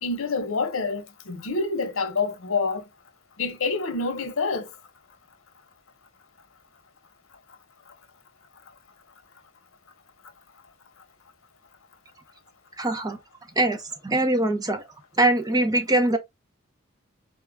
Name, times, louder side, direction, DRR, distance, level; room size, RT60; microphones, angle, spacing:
voice 1, 0.0-2.8 3.4-4.7, left 4 dB, 80° left, 0.9 m, -27 dB
voice 2, 12.8-13.2 13.6-14.9 15.2-16.2, right 2 dB, 20° right, 0.7 m, -22 dB
4.3 x 2.3 x 3.5 m
head